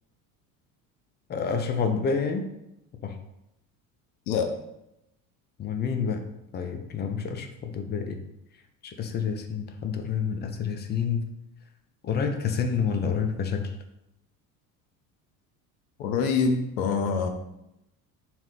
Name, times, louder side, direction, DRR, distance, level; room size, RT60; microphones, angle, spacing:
voice 1, 1.3-2.4 3.0-3.1 5.6-6.3 6.5-8.2 8.8-11.2 12.0-13.7, left 6 dB, 25° left, 6 dB, 0.3 m, -28 dB
voice 2, 16.0-17.3, left 5 dB, 85° left, 6 dB, 0.6 m, -25 dB
2.8 x 2.0 x 3.9 m, 0.86 s
hypercardioid pair, 75°, 44 cm